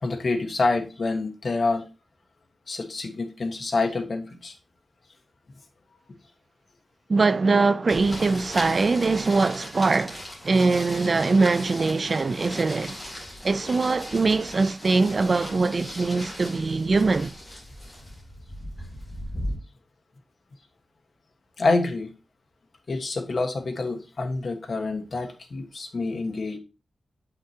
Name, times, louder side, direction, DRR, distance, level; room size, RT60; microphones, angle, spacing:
voice 1, 0.0-1.8 2.7-4.5 21.6-22.1 22.9-26.6, left 3 dB, 55° left, 1.3 m, -27 dB
voice 2, 7.1-13.0 13.4-17.3, right 3 dB, 45° right, 0.3 m, -22 dB
sound 1, 7.9-19.5, equal, 15° left, 3.3 m, -38 dB
7.7 x 5.8 x 2.9 m
wide cardioid pair, 125°, 0 cm